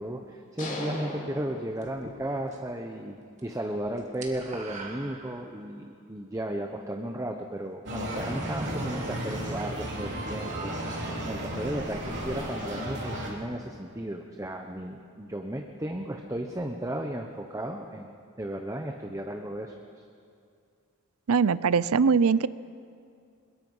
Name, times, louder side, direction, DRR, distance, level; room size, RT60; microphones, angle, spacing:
voice 1, 0.0-18.1 18.4-20.0, right 1 dB, 15° right, 3 dB, 0.9 m, -35 dB
sound 1, 0.6-2.4, left 1 dB, 35° left, 3.3 m, -38 dB
sound 2, 1.8-2.8 3.1-3.4 3.7-5.8, right 3 dB, 30° right, 2.0 m, -43 dB
sound 3, 7.9-13.3, right 1 dB, 55° right, 3.4 m, -33 dB
voice 2, 21.3-22.5, right 5 dB, 70° right, 18 dB, 0.5 m, -22 dB
22.0 x 21.5 x 5.6 m, 2.4 s
head